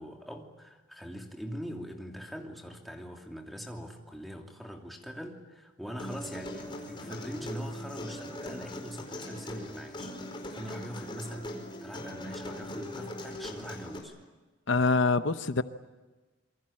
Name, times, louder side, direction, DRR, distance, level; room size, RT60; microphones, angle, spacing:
voice 1, 0.0-14.2, equal, ahead, 1 dB, 2.9 m, -42 dB
Human voice, 6.0-14.0, left 1 dB, 25° left, 4.7 m, -40 dB
voice 2, 14.7-15.6, left 3 dB, 70° left, 11 dB, 0.9 m, -25 dB
27.5 x 23.5 x 8.9 m, 1.2 s
head